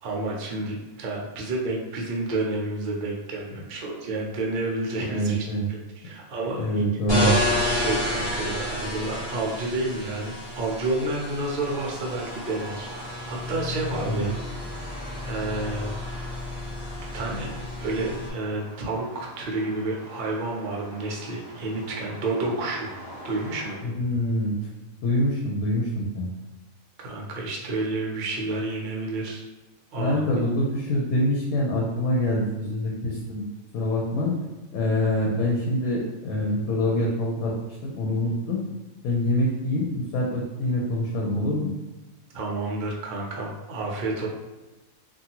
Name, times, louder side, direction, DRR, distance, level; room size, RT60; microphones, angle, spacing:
voice 1, 0.0-5.5 6.0-6.8 7.2-7.3 7.7-14.4 14.8-14.9 15.2-16.0 17.1-17.5 17.8-22.9 23.2-23.9 27.0-29.4 29.9-30.2 42.3-44.3, right 2 dB, 55° right, -2 dB, 0.5 m, -30 dB
voice 2, 5.1-5.7 6.6-7.3 14.0-14.2 23.8-24.5 25.0-26.3 30.0-33.4 33.7-34.3 34.7-37.5 37.8-38.6 39.0-41.7, left 1 dB, 90° left, -3 dB, 1.0 m, -25 dB
sound 1, 7.1-18.3, left 1 dB, 20° left, 1.0 m, -31 dB
sound 2, 11.6-23.8, equal, 45° left, 1.0 m, -44 dB
2.6 x 2.3 x 2.8 m, 1.1 s
omnidirectional pair, 1.5 m